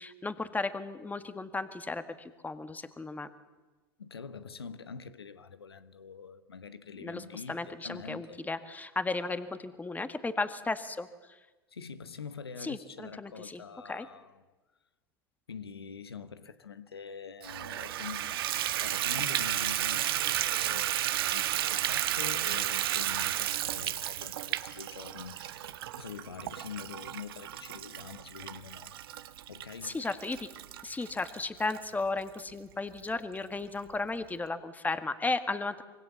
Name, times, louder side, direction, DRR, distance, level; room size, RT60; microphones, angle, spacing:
voice 1, 0.0-3.3 7.0-11.1 12.6-13.6 13.9-14.1 29.8-30.5 30.8-35.8, left 3 dB, 15° left, 1.8 m, -35 dB
voice 2, 4.0-8.4 11.7-14.4 15.5-29.0 29.5-30.0, left 6 dB, 90° left, 1.1 m, -45 dB
Water tap faucet / Bathtub (filling or washing), 17.4-31.8 32.4-32.5 33.0-33.1 33.4-33.5, right 13 dB, 70° right, 1.2 m, -33 dB
25.5 x 24.0 x 7.2 m
hypercardioid pair, 85°, 13 cm